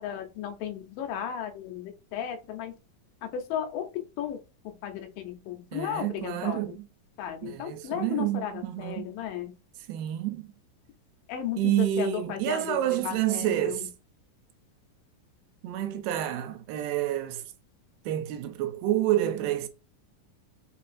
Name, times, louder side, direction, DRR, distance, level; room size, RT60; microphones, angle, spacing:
voice 1, 0.0-2.7 3.2-6.8 7.2-9.5 11.3-13.9, left 9 dB, 90° left, 2.4 m, -35 dB
voice 2, 5.7-6.8 7.4-9.1 9.9-10.5 11.6-13.9 15.6-17.5 18.1-19.7, right 12 dB, 85° right, 2.2 m, -29 dB
5.3 x 2.5 x 2.4 m
omnidirectional pair, 3.9 m